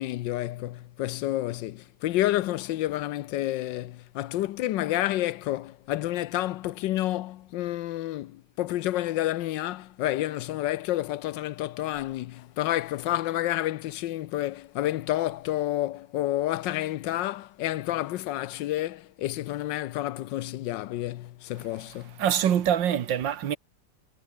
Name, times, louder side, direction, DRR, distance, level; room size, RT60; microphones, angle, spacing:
voice 1, 0.0-22.2, left 14 dB, 80° left, 1.3 m, -29 dB
voice 2, 22.2-23.6, right 9 dB, 85° right, 1.9 m, -24 dB
omnidirectional pair, 2.0 m